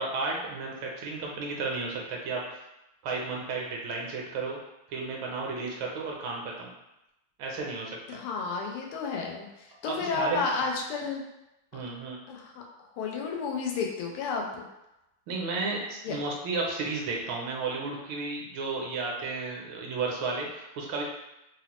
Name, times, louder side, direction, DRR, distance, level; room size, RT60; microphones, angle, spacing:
voice 1, 0.0-2.6 3.0-4.6 4.9-6.7 7.4-8.0 9.9-10.4 11.7-12.2 15.3-21.0, right 3 dB, 75° right, -1 dB, 1.3 m, -33 dB
voice 2, 8.1-11.2 12.3-12.6 13.0-14.6 16.0-16.2, left 4 dB, 90° left, 0 dB, 1.5 m, -32 dB
4.0 x 2.0 x 2.9 m, 0.92 s
omnidirectional pair, 2.4 m